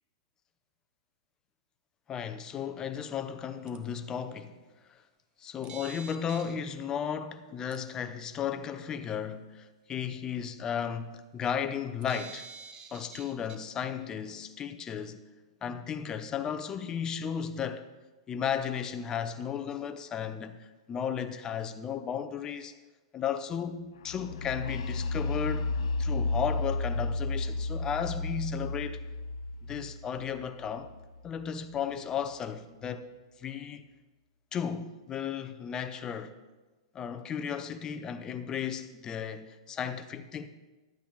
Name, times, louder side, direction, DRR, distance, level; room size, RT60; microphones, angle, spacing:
voice 1, 2.1-4.6 4.9-5.0 5.4-12.5 12.9-15.2 15.6-17.8 18.3-22.7 23.1-29.0 29.6-30.9 31.2-33.1 33.4-33.9 34.5-36.3 36.9-40.5, left 8 dB, 25° left, 0.6 m, -34 dB
sound 1, 3.7-3.8 5.6-6.5 7.7-7.8 12.0-13.7, right 6 dB, 30° right, 0.8 m, -46 dB
sound 2, 24.1-31.8, left 2 dB, 65° left, 0.5 m, -33 dB
11.5 x 8.4 x 3.9 m
hypercardioid pair, 120°, 3 cm